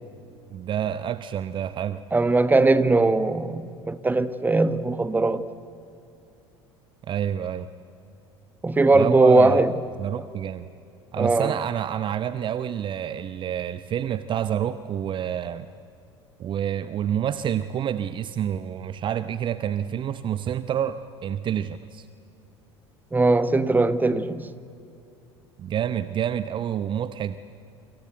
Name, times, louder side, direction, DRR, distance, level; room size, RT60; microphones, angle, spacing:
voice 1, 0.5-2.0 7.1-7.7 8.9-9.6 10.0-10.7 11.1-15.7 16.4-22.1 25.6-27.4, right 9 dB, 35° right, 0.8 m, -28 dB
voice 2, 2.1-5.4 8.6-9.7 11.2-11.5 23.1-24.5, right 3 dB, 10° right, 1.3 m, -20 dB
28.5 x 26.0 x 8.0 m
figure-of-eight pair, 65°, 14 cm